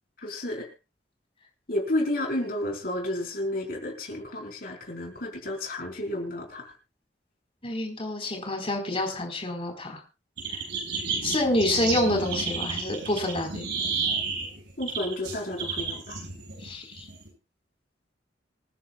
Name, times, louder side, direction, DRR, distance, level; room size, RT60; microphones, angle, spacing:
voice 1, 0.2-0.7 1.7-6.7 14.8-16.2, left 1 dB, 55° left, 1 dB, 4.4 m, -31 dB
voice 2, 7.6-10.0 11.2-13.6 16.6-17.0, left 1 dB, 30° left, 3 dB, 4.2 m, -27 dB
sound 1, 10.4-17.3, right 4 dB, 70° right, 7.2 m, -32 dB
27.0 x 10.0 x 2.4 m, 0.28 s
head